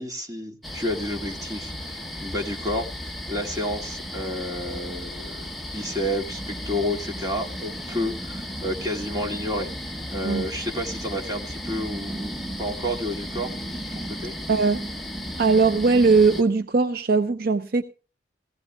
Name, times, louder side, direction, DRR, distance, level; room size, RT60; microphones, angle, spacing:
voice 1, 0.0-2.9 3.3-9.7 10.1-13.5 13.9-14.3, equal, 20° right, 2.2 m, -30 dB
sound 1, 0.6-16.4, equal, ahead, 1.1 m, -34 dB
voice 2, 14.5-14.8 15.4-17.8, right 4 dB, 55° right, 0.7 m, -20 dB
18.0 x 16.0 x 2.3 m
head